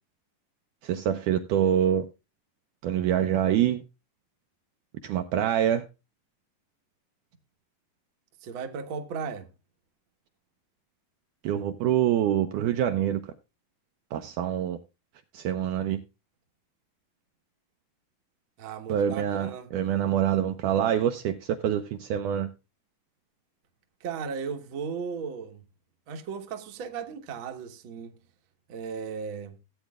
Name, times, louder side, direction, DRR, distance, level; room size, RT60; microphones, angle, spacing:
voice 1, 0.8-2.1 2.8-3.8 5.0-5.8 11.4-13.2 14.1-14.8 15.3-16.0 18.9-22.5, right 10 dB, 80° right, 1.9 m, -25 dB
voice 2, 8.4-9.5 18.6-19.7 24.0-25.6 26.1-28.2 28.7-29.6, right 6 dB, 60° right, 1.4 m, -36 dB
16.0 x 8.9 x 2.4 m
omnidirectional pair, 4.2 m